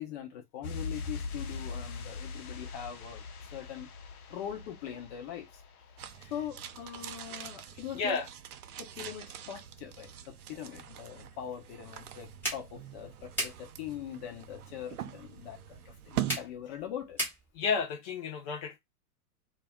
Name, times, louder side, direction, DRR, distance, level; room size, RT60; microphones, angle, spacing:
voice 1, 0.0-3.2 3.5-3.9 4.3-5.5 6.3-8.2 8.7-17.2, left 10 dB, 45° left, 0.9 m, -42 dB
sound 1, 0.6-7.1 7.4-7.5, left 4 dB, 70° left, 0.7 m, -42 dB
sound 2, 6.0-16.4, right 11 dB, 75° right, 0.5 m, -42 dB
voice 2, 7.9-8.3 17.5-18.8, left 5 dB, 25° left, 0.4 m, -32 dB
sound 3, 11.8-17.8, right 1 dB, 5° left, 1.1 m, -40 dB
2.2 x 2.2 x 3.5 m
hypercardioid pair, 110°, 46 cm